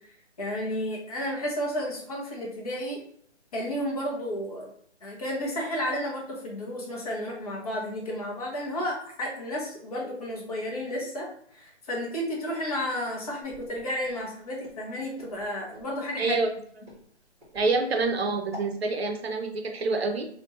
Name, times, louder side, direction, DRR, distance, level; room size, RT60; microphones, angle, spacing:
voice 1, 0.4-3.0 3.5-4.7 5.0-16.4, equal, 35° left, -2 dB, 0.9 m, -32 dB
Walk footsteps, 13.4-18.7, left 2 dB, 10° right, 1.4 m, -49 dB
voice 2, 16.2-16.5 17.5-20.3, right 3 dB, 60° right, 5 dB, 0.6 m, -27 dB
3.2 x 2.6 x 2.7 m, 0.62 s
figure-of-eight pair, 150°, 35 cm